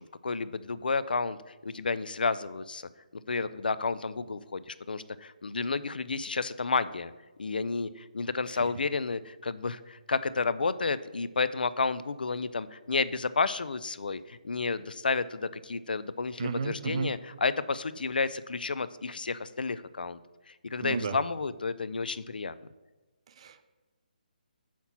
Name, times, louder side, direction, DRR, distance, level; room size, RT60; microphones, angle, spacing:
voice 1, 0.0-1.4 1.6-2.9 3.3-7.1 7.4-20.2 20.5-22.5, left 4 dB, 90° left, 15 dB, 0.3 m, -31 dB
voice 2, 16.4-17.1 20.8-21.2 23.3-23.6, right 5 dB, 40° right, 11 dB, 0.5 m, -33 dB
5.8 x 4.2 x 5.8 m, 1.2 s
hypercardioid pair, 155°, 5 cm